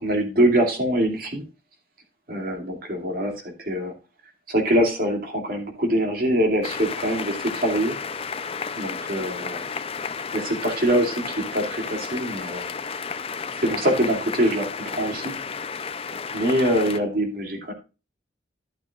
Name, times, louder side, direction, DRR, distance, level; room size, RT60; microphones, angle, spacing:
voice 1, 0.0-1.4 2.3-3.9 4.5-8.0 8.8-9.6 10.3-12.7 13.6-15.4 16.3-17.7, right 1 dB, 50° right, 3 dB, 2.5 m, -24 dB
sound 1, 6.6-17.0, left 5 dB, 30° left, 0.5 m, -32 dB
12.0 x 8.5 x 2.4 m, 0.30 s
head